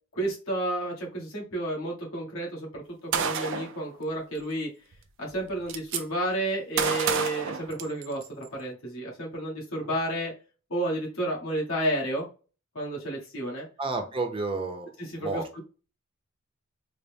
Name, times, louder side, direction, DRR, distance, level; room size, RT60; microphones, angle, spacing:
voice 1, 0.1-4.7 5.2-10.3 10.7-12.3 12.7-13.7 15.0-15.6, right 1 dB, 70° left, -2 dB, 1.5 m, -31 dB
Gunshot gunfire, 3.1-3.8 4.9-5.0 5.3-6.0 6.8-8.3, right 6 dB, 60° right, 0.5 m, -29 dB
voice 2, 13.8-15.6, right 3 dB, 25° right, 4 dB, 0.7 m, -32 dB
4.0 x 2.1 x 3.4 m, 0.35 s
head